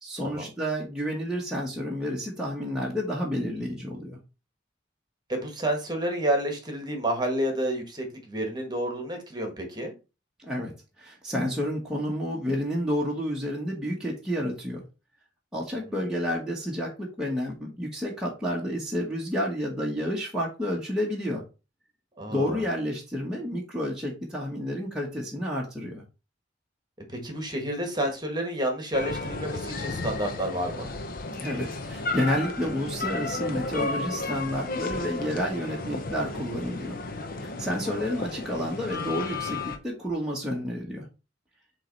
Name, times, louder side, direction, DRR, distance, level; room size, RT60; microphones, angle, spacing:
voice 1, 0.0-4.2 10.4-14.8 15.5-21.4 22.3-26.0 31.4-37.0 37.4-41.1, equal, 5° right, -5 dB, 1.2 m, -30 dB
voice 2, 5.3-9.9 15.9-16.0 22.2-22.6 27.1-30.9 37.6-37.7, right 1 dB, 20° right, 3 dB, 1.5 m, -30 dB
sound 1, 28.9-39.8, left 3 dB, 50° left, 0.9 m, -33 dB
7.7 x 3.2 x 3.9 m, 0.30 s
head